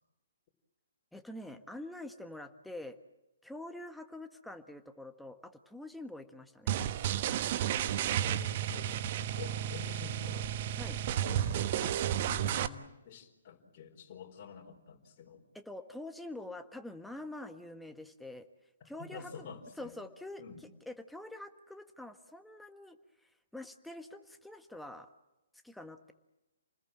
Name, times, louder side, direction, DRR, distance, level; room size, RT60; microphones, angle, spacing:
voice 1, 1.1-3.0 3.4-6.8 10.8-11.0 15.5-18.5 18.8-19.5 19.8-23.0 23.5-25.1 25.6-26.1, left 1 dB, ahead, 6 dB, 1.6 m, -46 dB
sound 1, 6.7-12.7, right 10 dB, 40° right, 1.2 m, -32 dB
voice 2, 8.1-10.5 11.2-11.7 12.0-15.4 18.8-19.9 20.4-20.6, left 6 dB, 35° left, 0 dB, 4.5 m, -49 dB
29.5 x 20.0 x 7.6 m, 0.98 s
figure-of-eight pair, 130°, 0 cm